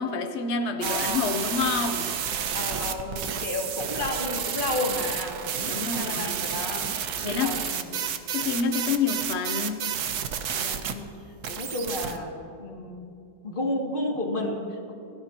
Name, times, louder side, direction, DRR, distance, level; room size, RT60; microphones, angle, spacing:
voice 1, 0.0-2.2 5.6-6.5 7.2-7.6 8.3-10.0, left 5 dB, 70° left, 7 dB, 0.6 m, -28 dB
voice 2, 0.8-1.7 2.5-6.9 7.3-7.9 10.6-11.2 11.5-13.1 13.4-14.9, left 1 dB, 25° left, -1 dB, 2.4 m, -32 dB
sound 1, 0.8-10.9 11.4-12.2, right 8 dB, 60° right, 1.3 m, -30 dB
27.0 x 17.5 x 3.0 m, 2.5 s
omnidirectional pair, 2.2 m